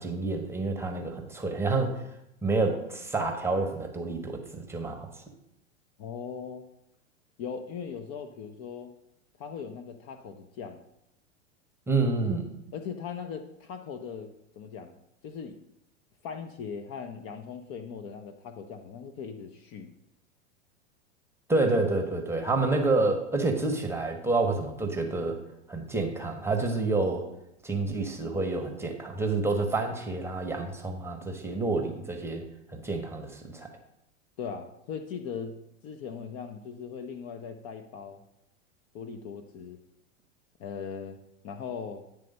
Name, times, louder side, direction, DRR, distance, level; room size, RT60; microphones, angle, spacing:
voice 1, 0.0-2.0 2.4-5.1 11.9-12.4 21.5-25.4 25.7-27.3 27.6-32.4 32.7-33.7, right 3 dB, 5° right, 3 dB, 0.9 m, -28 dB
voice 2, 6.0-6.7 7.4-8.9 9.4-10.8 12.7-15.6 16.2-19.9 34.4-35.6 35.8-38.2 38.9-39.8 40.6-41.2 41.4-42.0, left 6 dB, 40° left, 7 dB, 0.6 m, -39 dB
9.0 x 3.4 x 5.3 m, 0.81 s
hypercardioid pair, 105°, 37 cm